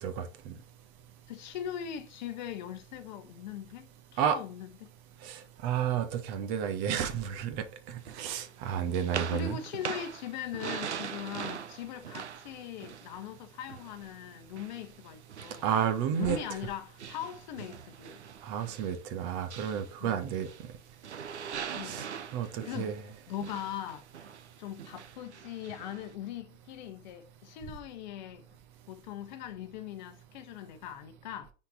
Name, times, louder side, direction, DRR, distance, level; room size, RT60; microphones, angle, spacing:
voice 1, 0.0-0.5 4.2-4.4 5.2-9.6 15.6-16.4 18.4-20.5 21.8-22.1 22.3-22.9, right 8 dB, 30° right, 1.4 m, -31 dB
voice 2, 1.3-4.9 9.3-15.7 16.2-18.2 20.0-20.3 21.7-22.1 22.4-23.0 23.3-24.3 24.6-28.4 28.9-31.5, left 10 dB, 40° left, 1.1 m, -40 dB
sound 1, 8.1-14.2 14.6-20.8 21.0-26.1, right 8 dB, 65° right, 1.0 m, -42 dB
9.5 x 4.4 x 4.3 m
figure-of-eight pair, 115°, 36 cm